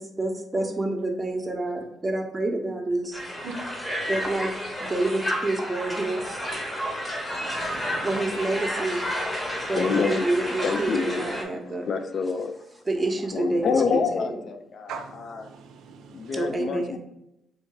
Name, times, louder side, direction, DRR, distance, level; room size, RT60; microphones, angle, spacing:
voice 1, 0.0-3.2 4.1-4.5 4.8-6.5 8.0-9.0 9.7-11.9 12.9-14.4 16.3-17.0, right 2 dB, 20° right, 3 dB, 0.8 m, -28 dB
Crowd, 3.1-11.4, equal, 15° left, 1.0 m, -31 dB
voice 2, 7.5-8.1 14.9-16.3, right 6 dB, 80° right, 6 dB, 0.4 m, -41 dB
voice 3, 9.4-10.3 10.6-12.5 13.3-15.5 16.1-17.0, left 5 dB, 55° left, 8 dB, 0.4 m, -28 dB
3.7 x 2.6 x 4.5 m, 0.83 s
cardioid pair, 90°, 0 cm